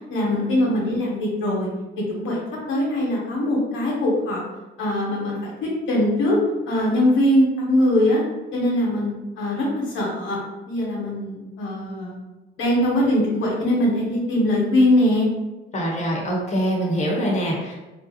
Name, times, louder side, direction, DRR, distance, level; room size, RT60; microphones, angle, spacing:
voice 1, 0.1-1.7 2.1-2.4 2.7-4.4 4.8-6.4 6.7-8.2 8.5-10.4 10.6-12.2 12.6-15.3, left 1 dB, 85° left, -4 dB, 1.1 m, -21 dB
voice 2, 15.7-17.7, equal, 35° left, -3 dB, 1.0 m, -24 dB
3.2 x 2.6 x 2.8 m, 1.1 s
cardioid pair, 90°, 20 cm